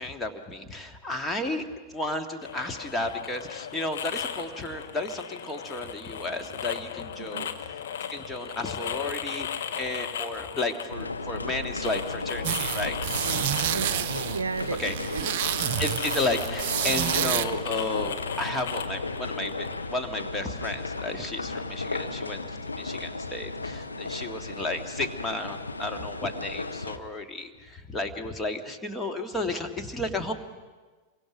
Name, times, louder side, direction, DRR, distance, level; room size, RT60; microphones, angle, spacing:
voice 1, 0.0-7.5 8.1-9.5 9.7-13.0 14.8-15.0 15.8-30.3, left 2 dB, 15° left, 5 dB, 1.9 m, -33 dB
sound 1, 2.4-19.9, left 8 dB, 60° left, 1.3 m, -37 dB
voice 2, 7.2-7.5 13.7-15.4, right 4 dB, 75° right, 14 dB, 0.7 m, -35 dB
sound 2, 10.9-27.0, left 3 dB, 80° left, 1.0 m, -35 dB
sound 3, 12.4-17.5, right 10 dB, 50° right, 0.9 m, -29 dB
27.5 x 23.5 x 6.1 m, 1.3 s
figure-of-eight pair, 90°, 0 cm